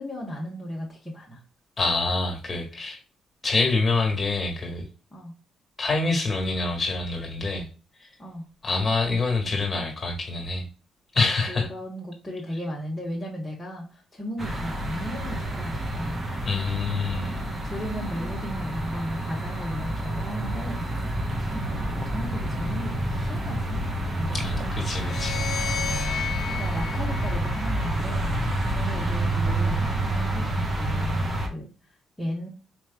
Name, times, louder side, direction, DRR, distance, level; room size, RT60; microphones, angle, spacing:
voice 1, 0.0-1.4 5.1-5.3 8.2-8.4 11.5-16.2 17.3-20.8 21.5-23.8 24.1-24.7 26.5-28.4 28.7-31.7 32.2-32.5, equal, 10° left, 1.3 m, -35 dB
voice 2, 1.8-3.0 3.4-4.9 5.8-7.7 8.6-10.7 11.1-11.7 16.5-17.3 24.3-25.5, left 3 dB, 30° left, 1.7 m, -26 dB
sound 1, 14.4-31.5, right 1 dB, 30° right, 1.1 m, -28 dB
sound 2, 24.9-28.2, left 7 dB, 60° left, 0.7 m, -34 dB
4.6 x 3.1 x 2.3 m
cardioid pair, 90°, 0 cm